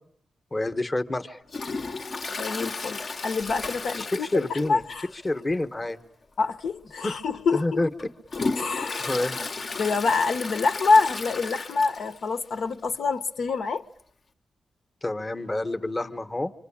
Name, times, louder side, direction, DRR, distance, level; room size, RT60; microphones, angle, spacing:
voice 1, 0.5-1.4 4.0-4.8 5.1-6.0 7.0-7.1 7.5-7.9 9.1-9.4 15.0-16.5, left 2 dB, 20° left, 1.1 m, -28 dB
Toilet flush, 1.5-4.9 5.2-5.3 5.7-5.8 6.7-6.8 7.3-12.3 12.6-12.7 12.8-12.9 14.0-14.1, left 3 dB, 40° left, 1.1 m, -34 dB
voice 2, 2.4-5.1 6.4-7.8 8.6-9.2 9.8-13.8, left 4 dB, 65° left, 1.1 m, -26 dB
26.0 x 25.5 x 8.6 m
wide cardioid pair, 145°, 0 cm